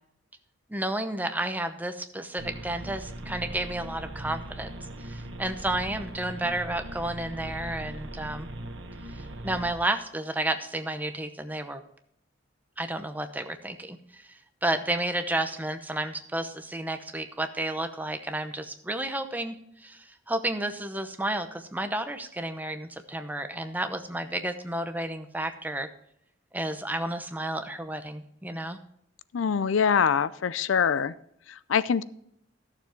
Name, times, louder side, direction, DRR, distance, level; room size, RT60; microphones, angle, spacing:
voice 1, 0.7-4.7 5.0-8.5 9.4-11.8 12.8-25.9 26.5-28.8, right 1 dB, 10° right, 8 dB, 0.8 m, -31 dB
sound 1, 2.4-9.7, right 1 dB, 70° right, 1.3 m, -39 dB
voice 2, 29.3-31.1 31.5-32.0, left 6 dB, 75° left, 17 dB, 0.4 m, -24 dB
13.5 x 7.0 x 4.5 m, 0.71 s
head